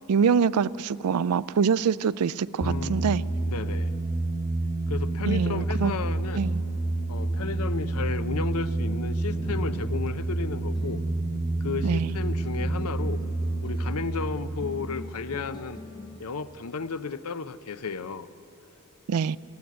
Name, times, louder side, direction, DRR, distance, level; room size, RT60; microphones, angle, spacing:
voice 1, 0.1-3.2 5.3-5.9 6.3-6.6 11.8-12.2 19.1-19.4, right 6 dB, 85° right, 19 dB, 0.4 m, -25 dB
voice 2, 2.6-3.1 3.4-3.9 4.9-6.5 7.1-11.0 11.6-13.2 13.6-15.8 16.2-18.3, left 5 dB, 80° left, 13 dB, 0.7 m, -33 dB
sound 1, 2.6-15.8, right 2 dB, 45° left, 1.9 m, -29 dB
sound 2, 9.3-16.2, left 2 dB, 20° left, 0.7 m, -44 dB
17.0 x 16.5 x 9.4 m, 2.9 s
head